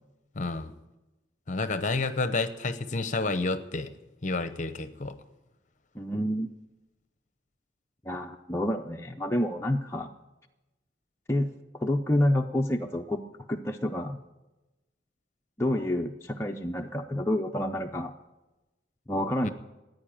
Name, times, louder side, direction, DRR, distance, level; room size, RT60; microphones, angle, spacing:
voice 1, 0.3-0.7 1.5-3.9 4.2-5.2 19.4-19.5, left 3 dB, 40° left, 11 dB, 0.9 m, -30 dB
voice 2, 6.0-6.5 8.1-10.1 11.3-13.2 13.5-14.2 15.6-18.1 19.1-19.5, left 1 dB, 15° left, 1 dB, 0.5 m, -28 dB
15.0 x 9.8 x 8.8 m, 1.1 s
head